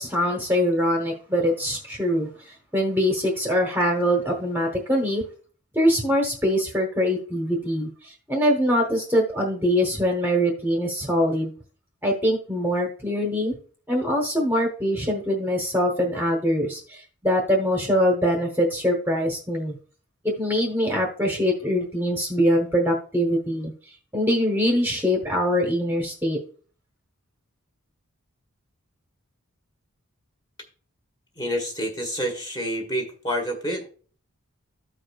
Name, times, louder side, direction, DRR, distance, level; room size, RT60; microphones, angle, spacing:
voice 1, 0.0-5.2 5.7-11.5 12.0-13.5 13.9-19.7 20.2-23.7 24.1-26.4, equal, 10° right, 1 dB, 1.0 m, -23 dB
voice 2, 31.4-33.9, equal, 20° left, 2 dB, 1.3 m, -28 dB
14.5 x 4.9 x 2.3 m, 0.42 s
head